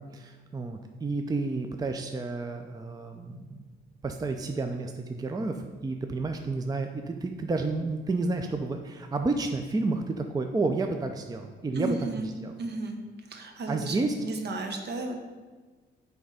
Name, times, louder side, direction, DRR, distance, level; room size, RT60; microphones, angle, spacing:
voice 1, 0.1-3.6 4.0-12.5 13.7-14.1, right 3 dB, 20° right, 5 dB, 0.5 m, -31 dB
voice 2, 11.7-12.3 12.6-15.2, right 2 dB, 55° right, 5 dB, 1.0 m, -34 dB
8.3 x 3.5 x 5.0 m, 1.4 s
cardioid pair, 90°, 20 cm